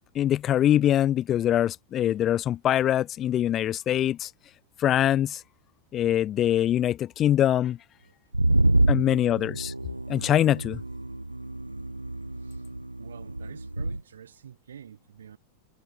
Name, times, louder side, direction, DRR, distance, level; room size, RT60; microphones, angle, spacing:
voice 1, 0.1-4.3 4.8-5.4 5.9-7.8 8.9-9.7 10.1-10.8, left 11 dB, 30° left, 0.9 m, -23 dB
sound 1, 8.3-14.0, right 2 dB, 85° right, 0.5 m, -27 dB
voice 2, 13.0-15.4, right 8 dB, 65° right, 4.8 m, -47 dB
figure-of-eight pair, 90°, 0 cm